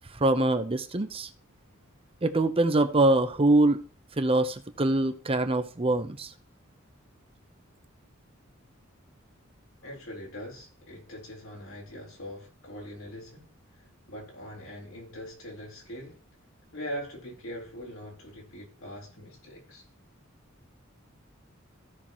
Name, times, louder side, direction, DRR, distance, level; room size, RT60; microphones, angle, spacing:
voice 1, 0.2-1.3 2.2-3.8 4.2-6.3, right 2 dB, 25° right, 0.7 m, -24 dB
voice 2, 9.8-16.2 16.7-19.8, equal, 75° left, 4.1 m, -42 dB
15.5 x 5.9 x 3.0 m
head